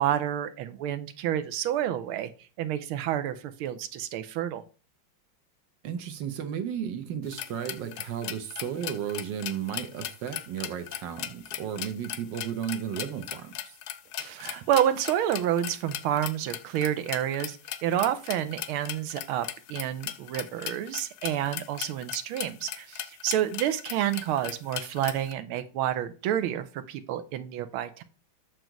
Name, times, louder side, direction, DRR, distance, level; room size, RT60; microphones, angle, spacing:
voice 1, 0.0-2.3 2.6-4.6 14.2-17.6 17.8-28.0, right 11 dB, 85° right, 1.6 m, -29 dB
voice 2, 5.8-13.8, right 9 dB, 65° right, 1.4 m, -34 dB
sound 1, 7.3-25.3, left 11 dB, 70° left, 0.9 m, -38 dB
6.2 x 5.1 x 4.6 m
omnidirectional pair, 2.3 m